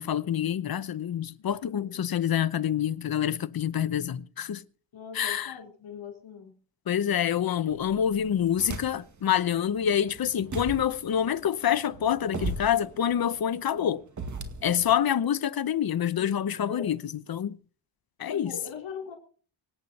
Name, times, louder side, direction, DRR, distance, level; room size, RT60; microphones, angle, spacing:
voice 1, 0.0-4.6 5.1-5.5 6.9-14.0 14.6-17.6 18.2-18.6, left 9 dB, 55° left, 0.9 m, -27 dB
voice 2, 1.6-2.1 4.9-6.5 16.2-16.9 18.2-19.2, left 6 dB, 85° left, 4.6 m, -41 dB
sound 1, 7.7-9.2 9.7-15.0, right 3 dB, 40° right, 2.0 m, -38 dB
25.5 x 8.7 x 4.2 m
wide cardioid pair, 160°, 45 cm